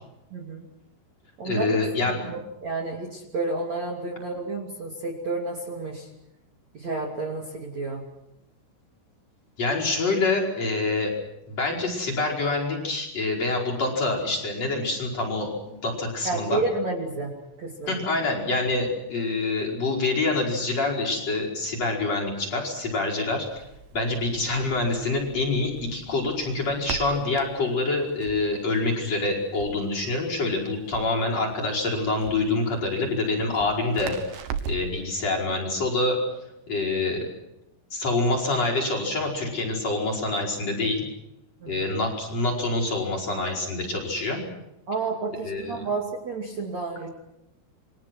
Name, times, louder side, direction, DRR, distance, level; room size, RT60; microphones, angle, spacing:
voice 1, 0.3-0.7 1.4-1.9 2.2-6.1 6.7-8.0 16.2-17.3 17.6-18.0 41.6-41.9 44.9-47.1, right 3 dB, 40° right, -1 dB, 3.3 m, -30 dB
voice 2, 1.4-2.3 9.6-11.1 11.5-16.6 17.9-23.6 23.9-36.2 36.7-37.2 37.9-41.1 41.7-44.4 45.4-45.7, left 2 dB, 30° left, -2 dB, 5.8 m, -26 dB
Crackle, 23.4-35.0, right 6 dB, 70° right, 3.2 m, -40 dB
29.0 x 24.5 x 6.2 m, 0.89 s
omnidirectional pair, 5.9 m